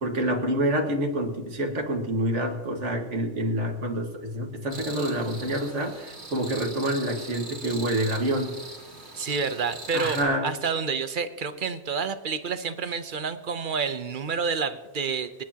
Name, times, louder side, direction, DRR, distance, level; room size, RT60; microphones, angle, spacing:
voice 1, 0.0-8.6 9.9-10.5, right 1 dB, 85° right, 3 dB, 2.1 m, -27 dB
sound 1, 4.7-10.2, right 2 dB, 65° right, 2.4 m, -41 dB
voice 2, 9.2-10.2 10.4-15.4, right 5 dB, 50° right, 11 dB, 0.9 m, -29 dB
27.5 x 9.7 x 2.9 m, 1.2 s
omnidirectional pair, 1.2 m